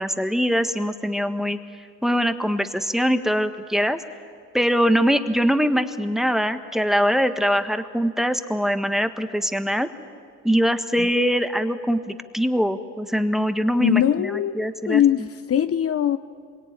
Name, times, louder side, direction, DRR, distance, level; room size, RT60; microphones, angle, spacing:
voice 1, 0.0-1.6 2.0-4.0 4.5-9.9 10.4-15.0, equal, ahead, 1.5 m, -22 dB
voice 2, 13.8-14.5 14.9-16.2, left 10 dB, 50° left, 0.8 m, -21 dB
26.0 x 23.0 x 9.9 m
cardioid pair, 90°, 30 cm